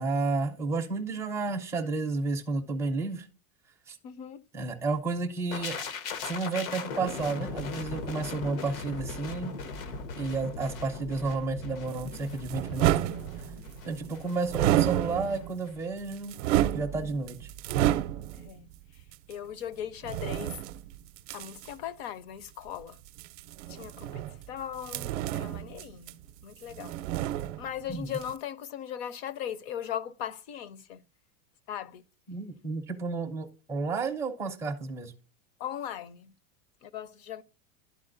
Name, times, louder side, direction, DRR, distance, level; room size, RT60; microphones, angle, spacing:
voice 1, 0.0-3.3 3.9-4.0 4.5-5.8 6.2-9.5 10.2-12.9 13.8-16.3 16.7-17.5 27.9-28.2 32.3-35.1, right 3 dB, 5° right, 0.4 m, -31 dB
voice 2, 4.0-4.4 18.4-18.7 19.3-20.6 21.3-23.0 23.7-27.0 27.6-31.0 31.7-32.0 35.6-36.3 36.8-37.4, left 10 dB, 50° left, 0.6 m, -38 dB
sound 1, 5.5-15.4 15.7-15.9, left 4 dB, 80° left, 1.1 m, -39 dB
sound 2, 11.9-13.8 14.5-15.6 16.0-18.5 19.1-19.2 20.0-21.7 23.1-24.5 24.8-26.4 26.7-27.9 28.1-28.3, right 13 dB, 65° right, 0.6 m, -30 dB
12.0 x 4.2 x 2.5 m
supercardioid pair, 155°, 40 cm